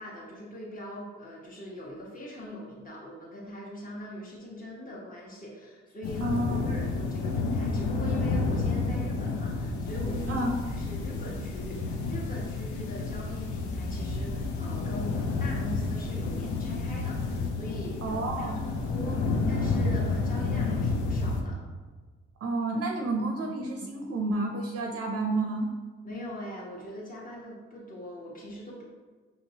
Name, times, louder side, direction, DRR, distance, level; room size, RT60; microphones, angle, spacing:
voice 1, 0.0-21.6 26.0-28.8, equal, 30° left, -5 dB, 1.2 m, -42 dB
sound 1, 6.0-21.4, left 3 dB, 75° left, 0.6 m, -30 dB
voice 2, 6.2-6.7 10.3-10.5 18.0-18.6 22.4-25.7, right 2 dB, 50° right, 2 dB, 0.6 m, -30 dB
5.4 x 2.9 x 2.8 m, 1.4 s
supercardioid pair, 60°, 29 cm